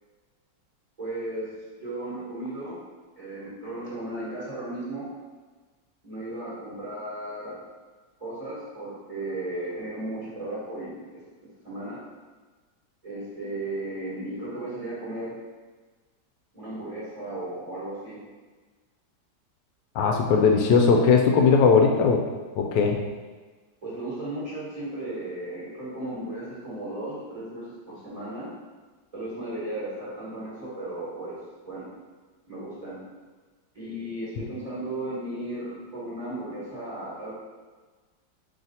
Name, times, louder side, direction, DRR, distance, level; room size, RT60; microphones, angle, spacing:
voice 1, 1.0-1.5 1.7-2.8 3.2-5.0 6.0-7.6 8.2-11.3 11.6-12.0 13.0-15.3 16.5-18.2 23.8-28.5 29.1-31.4 31.7-31.9 32.5-33.0 33.7-37.3, right 1 dB, 20° right, -9 dB, 1.2 m, -35 dB
voice 2, 19.9-22.2 22.5-23.0, left 5 dB, 80° left, 2 dB, 1.2 m, -19 dB
4.2 x 3.2 x 4.0 m, 1.4 s
omnidirectional pair, 1.9 m